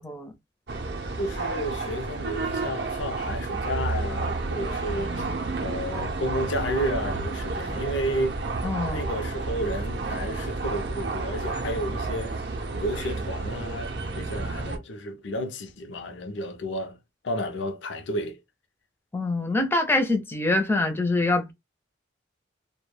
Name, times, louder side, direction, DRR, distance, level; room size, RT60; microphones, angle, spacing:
sound 1, 0.7-14.8, right 3 dB, 60° right, 0.5 m, -31 dB
voice 1, 1.2-5.3 5.6-8.4 8.9-12.4 12.7-17.0 17.2-18.4, equal, 75° left, 0.5 m, -32 dB
voice 2, 8.6-9.0 19.1-21.5, left 2 dB, 10° left, 0.4 m, -24 dB
2.1 x 2.1 x 3.1 m
head